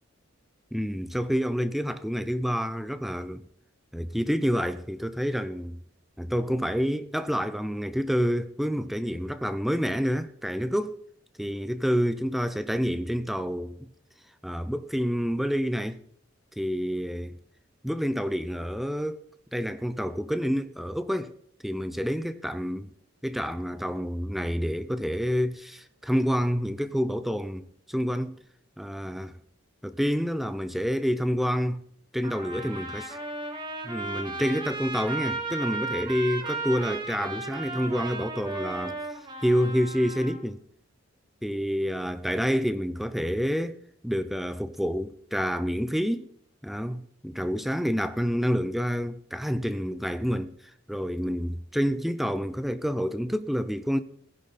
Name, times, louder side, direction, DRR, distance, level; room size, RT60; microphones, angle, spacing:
voice 1, 0.7-3.5 3.9-5.8 6.2-11.0 11.4-13.9 14.4-16.0 16.6-17.4 17.8-19.2 19.5-21.3 21.6-22.9 23.2-28.4 28.8-29.3 29.8-31.8 32.1-33.2 33.8-39.0 39.4-40.6 41.4-43.8 44.0-46.3 46.6-54.0, equal, ahead, 0.6 m, -28 dB
Trumpet, 32.2-40.4, right 3 dB, 25° right, 2.8 m, -35 dB
19.0 x 10.5 x 4.2 m
head